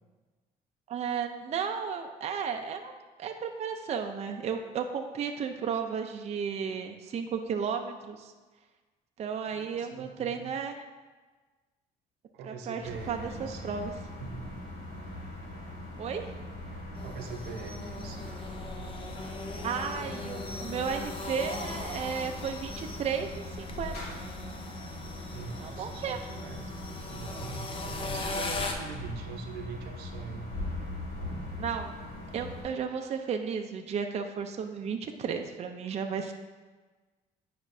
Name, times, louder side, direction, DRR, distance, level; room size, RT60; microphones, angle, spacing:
voice 1, 0.9-2.9 3.2-8.3 9.2-10.8 12.4-12.8 13.1-13.9 16.0-16.3 19.6-24.0 25.6-26.2 31.6-31.9 32.3-36.3, right 6 dB, 40° right, 4 dB, 0.5 m, -34 dB
voice 2, 9.5-10.5 12.3-13.8 14.2-14.6 17.0-18.4 20.0-20.6 25.3-26.7 27.1-30.6, right 5 dB, 90° right, 3 dB, 0.8 m, -43 dB
sound 1, 12.8-32.6, left 1 dB, 70° left, 1.9 m, -41 dB
sound 2, 16.9-28.7, left 3 dB, 30° left, 0.7 m, -40 dB
9.3 x 5.1 x 2.7 m, 1.3 s
cardioid pair, 110°, 17 cm